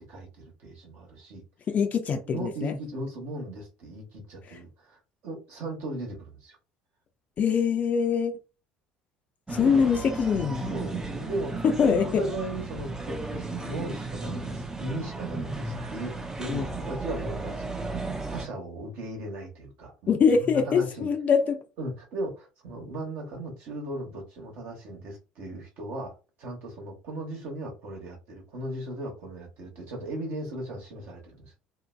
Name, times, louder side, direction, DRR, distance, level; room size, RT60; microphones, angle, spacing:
voice 1, 0.1-1.4 2.3-6.6 9.6-9.8 10.7-11.6 12.2-21.1 21.8-26.1 26.4-31.6, right 1 dB, 55° right, 1.0 m, -37 dB
voice 2, 1.7-2.7 7.4-8.3 9.5-10.7 11.6-12.2 16.5-16.7 20.1-21.6, left 6 dB, 40° left, 0.5 m, -23 dB
sound 1, 9.5-18.5, right 3 dB, 15° right, 0.5 m, -34 dB
2.7 x 2.1 x 2.4 m
figure-of-eight pair, 60°, 4 cm